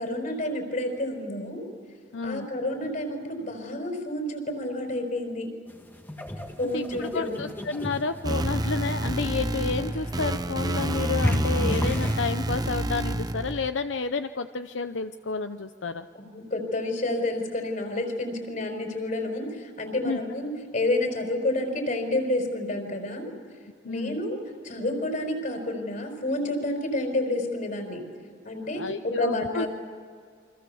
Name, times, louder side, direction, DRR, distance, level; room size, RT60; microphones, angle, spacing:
voice 1, 0.0-1.6 2.2-5.5 6.6-7.5 16.1-23.3 23.8-24.4 24.6-28.0 28.4-29.7, left 1 dB, 45° left, 4 dB, 5.1 m, -29 dB
voice 2, 2.1-2.5 6.7-16.1 20.0-20.2 23.8-24.2 28.7-29.6, left 4 dB, 80° left, 9 dB, 0.7 m, -30 dB
sound 1, 5.7-12.2, left 1 dB, 10° left, 1.7 m, -34 dB
sound 2, 8.2-13.7, right 1 dB, 20° right, 0.7 m, -28 dB
28.5 x 25.5 x 7.1 m, 2.1 s
head